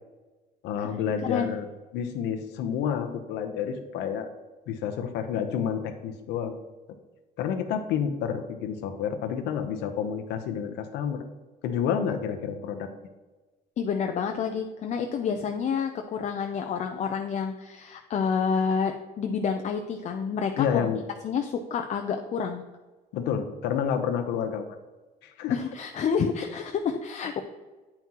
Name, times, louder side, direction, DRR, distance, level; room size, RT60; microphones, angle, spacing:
voice 1, 0.6-1.7 1.9-4.3 4.7-6.6 7.4-11.2 11.6-12.9 20.6-21.0 23.1-24.8 25.2-25.6, left 8 dB, 90° left, 7 dB, 0.8 m, -29 dB
voice 2, 1.2-1.5 13.8-20.9 21.2-22.6 25.5-27.4, left 6 dB, 45° left, 5 dB, 0.5 m, -29 dB
8.9 x 5.8 x 3.0 m, 1.2 s
cardioid pair, 110°, 17 cm